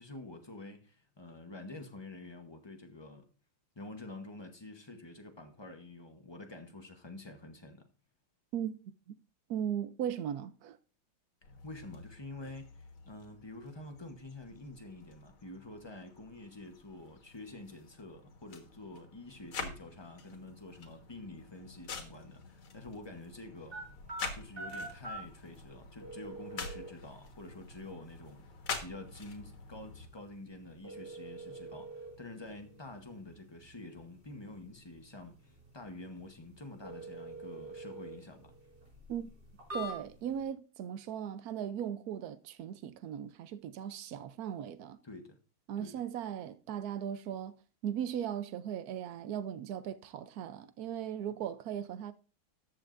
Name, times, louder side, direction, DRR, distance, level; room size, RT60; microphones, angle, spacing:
voice 1, 0.0-3.3 3.8-7.9 11.4-23.8 24.3-38.6 45.0-45.4 45.8-46.0, left 2 dB, 30° left, 0.5 m, -48 dB
voice 2, 8.5-9.2 9.5-10.8 39.1-39.3 39.7-45.0 45.7-47.6 47.8-52.1, right 9 dB, 80° right, 0.8 m, -38 dB
sound 1, 11.4-30.1, left 4 dB, 80° left, 2.4 m, -47 dB
sound 2, 23.7-40.4, right 1 dB, 30° right, 5.4 m, -47 dB
14.0 x 8.8 x 2.6 m
omnidirectional pair, 2.3 m